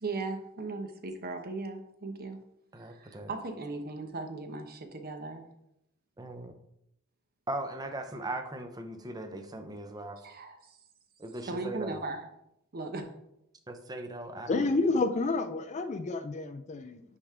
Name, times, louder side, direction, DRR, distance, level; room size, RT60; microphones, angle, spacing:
voice 1, 0.0-2.4 2.9-5.4 10.2-10.8 11.5-12.3 12.7-13.1, right 3 dB, 45° right, 6 dB, 0.8 m, -37 dB
voice 2, 2.7-3.3 6.2-6.6 7.5-10.2 11.2-12.0 13.7-14.5, right 1 dB, 20° right, 6 dB, 0.7 m, -39 dB
voice 3, 14.5-17.0, left 3 dB, 30° left, 9 dB, 0.4 m, -29 dB
9.8 x 3.5 x 3.6 m, 0.80 s
head